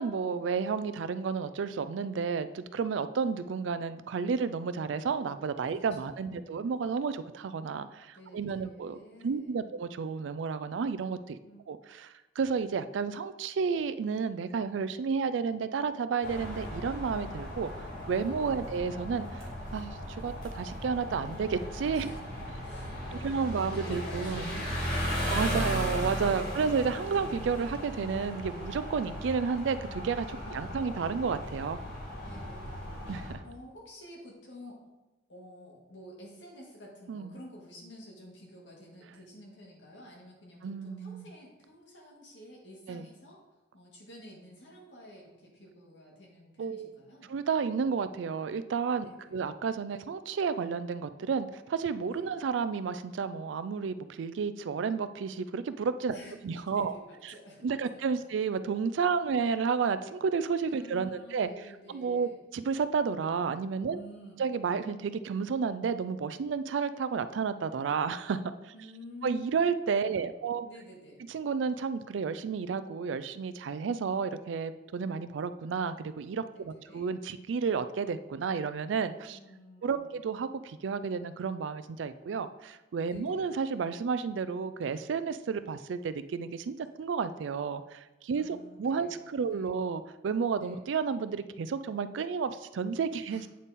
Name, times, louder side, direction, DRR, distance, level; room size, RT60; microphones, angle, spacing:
voice 1, 0.0-11.4 11.7-17.7 18.1-22.1 23.2-24.6 25.3-31.8 33.1-33.4 37.1-37.4 40.6-41.3 42.9-43.1 46.6-46.9 47.3-56.9 57.6-61.5 61.9-64.0 64.4-68.4 68.6-68.7 69.2-70.7 71.3-79.4 79.8-93.5, right 5 dB, 80° right, 13 dB, 0.4 m, -31 dB
voice 2, 5.6-6.9 8.1-9.7 11.4-11.6 18.4-18.7 21.9-22.2 22.6-25.8 26.2-26.7 30.3-30.8 32.2-33.0 33.4-34.8 35.3-43.4 43.7-47.4 49.0-49.3 52.1-52.3 56.1-56.3 56.7-58.2 60.7-62.4 63.9-64.4 68.7-69.5 70.1-71.2 76.5-77.1 79.3-80.2 83.1-83.5 88.4-89.7 90.6-90.8 93.3-93.5, equal, 75° left, -2 dB, 1.8 m, -51 dB
sound 1, 16.2-33.3, equal, 60° left, 2.0 m, -36 dB
8.6 x 3.7 x 4.1 m, 1.1 s
head